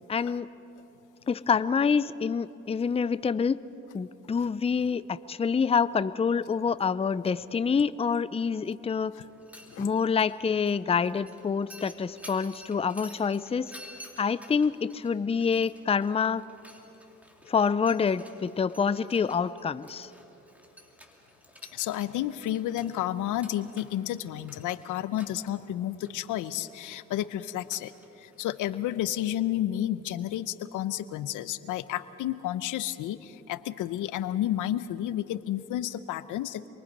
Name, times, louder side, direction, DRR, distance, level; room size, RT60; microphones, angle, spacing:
voice 1, 0.1-0.5 1.3-3.6 3.9-9.1 9.8-13.7 14.2-16.4 17.5-20.1, left 6 dB, 20° left, 15 dB, 0.5 m, -27 dB
Mechanisms, 9.3-28.9, equal, 5° right, 2.9 m, -53 dB
voice 2, 21.7-27.9 28.2-36.7, left 12 dB, 85° left, 14 dB, 0.8 m, -31 dB
27.5 x 23.0 x 5.4 m, 3.0 s
cardioid pair, 90°, 30 cm